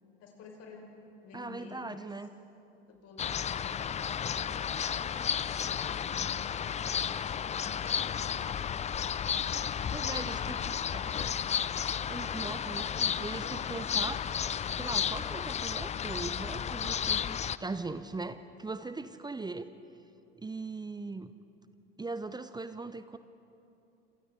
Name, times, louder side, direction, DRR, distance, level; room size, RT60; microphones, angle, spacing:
voice 1, 0.2-0.9 1.2-2.1 2.9-7.0 7.5-8.5 9.1-11.3, left 4 dB, 50° left, 0 dB, 5.4 m, -51 dB
voice 2, 1.3-2.3 9.9-11.2 12.1-14.3 14.7-19.7 20.3-21.3 22.0-23.2, right 3 dB, 15° right, 12 dB, 0.8 m, -40 dB
sound 1, 3.2-17.6, left 8 dB, 20° left, 0.5 m, -33 dB
27.5 x 27.5 x 3.8 m, 2.8 s
figure-of-eight pair, 65°, 31 cm